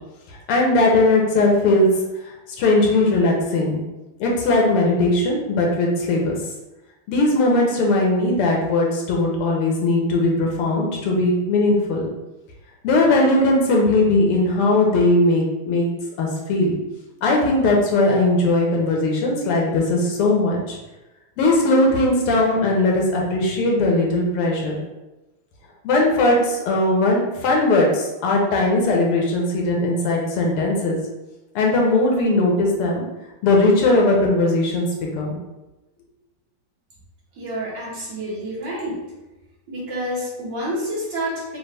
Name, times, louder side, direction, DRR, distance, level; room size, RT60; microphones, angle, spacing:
voice 1, 0.3-1.9 2.2-3.8 4.2-6.4 7.1-12.1 12.8-15.9 16.2-16.7 17.2-20.8 21.4-24.8 25.8-31.0 31.6-33.0 33.4-34.9 35.1-35.3, left 2 dB, 90° left, -1 dB, 1.8 m, -19 dB
voice 2, 37.3-39.0 39.7-41.6, equal, 60° right, -7 dB, 2.1 m, -28 dB
5.4 x 2.6 x 3.4 m, 1.0 s
omnidirectional pair, 2.4 m